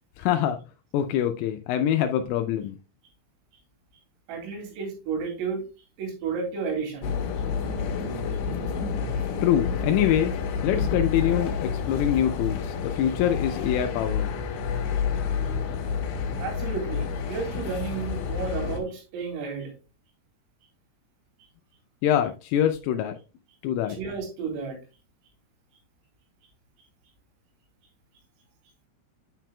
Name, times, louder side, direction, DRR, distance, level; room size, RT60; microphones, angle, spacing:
voice 1, 0.2-0.6 0.9-2.8 9.4-10.3 10.6-14.3 22.0-23.2 23.6-24.0, left 10 dB, 85° left, 6 dB, 3.1 m, -24 dB
voice 2, 4.3-5.6 6.0-7.1 16.4-19.7 23.9-24.8, right 5 dB, 80° right, 1 dB, 5.0 m, -32 dB
sound 1, 7.0-18.8, left 6 dB, 65° left, 3.1 m, -29 dB
9.2 x 7.6 x 2.2 m, 0.31 s
omnidirectional pair, 6.0 m